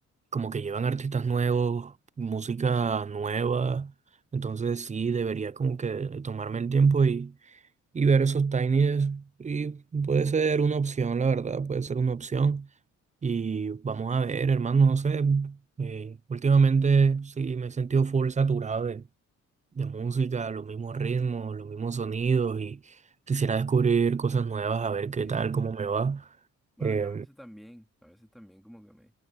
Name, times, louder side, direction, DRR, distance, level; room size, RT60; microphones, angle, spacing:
voice 1, 0.3-3.9 4.3-7.3 7.9-12.7 13.2-19.0 19.8-22.9 23.3-26.3 26.8-27.2, right 5 dB, 25° right, 0.7 m, -26 dB
voice 2, 25.2-25.6 26.8-29.1, equal, ahead, 2.7 m, -49 dB
cardioid pair, 90°, 30 cm